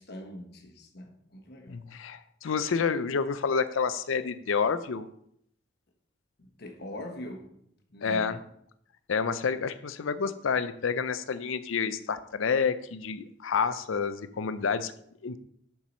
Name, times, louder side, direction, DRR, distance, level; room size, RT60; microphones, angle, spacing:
voice 1, 0.0-1.8 6.4-7.6 7.9-8.3, left 1 dB, 55° left, 1.2 m, -42 dB
voice 2, 1.7-5.1 8.0-8.4 9.1-14.9 15.2-15.4, left 5 dB, 75° left, 0.5 m, -29 dB
7.2 x 4.6 x 5.4 m
head